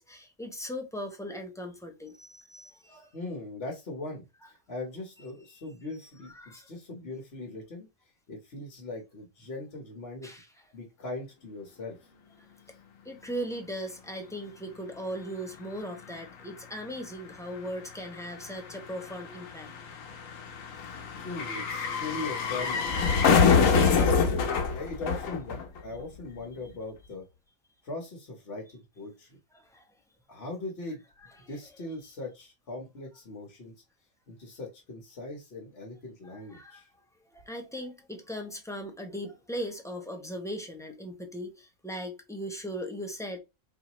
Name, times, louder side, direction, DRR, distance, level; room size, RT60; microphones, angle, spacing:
voice 1, 0.0-3.1 5.5-5.6 6.2-6.7 10.2-10.5 12.4-12.5 13.0-19.7 23.8-24.1 29.5-29.9 31.4-31.5 36.2-36.8 37.3-43.4, equal, 5° left, 0.6 m, -38 dB
voice 2, 2.9-7.9 8.3-10.3 10.7-12.0 20.8-23.3 23.9-27.2 27.8-29.4 30.3-31.0 31.5-33.7 34.3-36.9, left 2 dB, 55° left, 1.3 m, -40 dB
sound 1, 15.3-15.4 15.6-26.0 26.3-26.4, left 5 dB, 85° left, 1.2 m, -26 dB
4.5 x 2.7 x 3.0 m
omnidirectional pair, 1.3 m